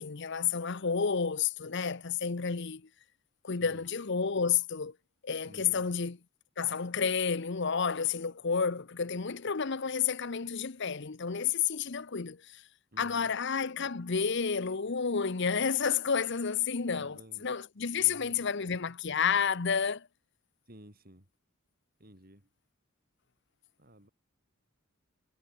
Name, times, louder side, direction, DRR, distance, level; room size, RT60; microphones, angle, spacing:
voice 1, 0.0-2.8 3.4-4.9 5.2-6.2 6.6-12.6 13.0-20.1, left 6 dB, 55° left, 0.8 m, -30 dB
voice 2, 3.5-3.8 5.4-5.9 12.9-13.3 17.0-17.5 18.0-18.4 20.7-21.3 22.0-22.5 23.8-24.1, right 1 dB, 45° right, 4.7 m, -54 dB
head